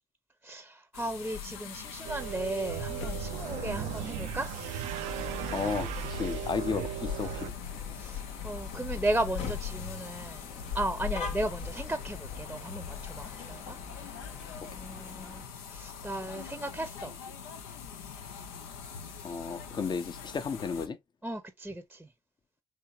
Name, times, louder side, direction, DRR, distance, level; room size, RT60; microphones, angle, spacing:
voice 1, 0.4-4.5 7.9-10.4 10.7-14.1 14.6-15.4 15.7-17.2 21.2-22.1, right 1 dB, 10° right, 0.6 m, -35 dB
sound 1, 0.9-20.9, left 7 dB, 85° left, 0.5 m, -41 dB
sound 2, 2.0-7.5, right 12 dB, 75° right, 0.4 m, -37 dB
sound 3, 5.0-15.5, left 5 dB, 65° left, 0.8 m, -44 dB
voice 2, 5.5-7.4 19.2-21.0, left 5 dB, 35° left, 0.7 m, -33 dB
3.5 x 2.8 x 3.0 m
hypercardioid pair, 50°, 12 cm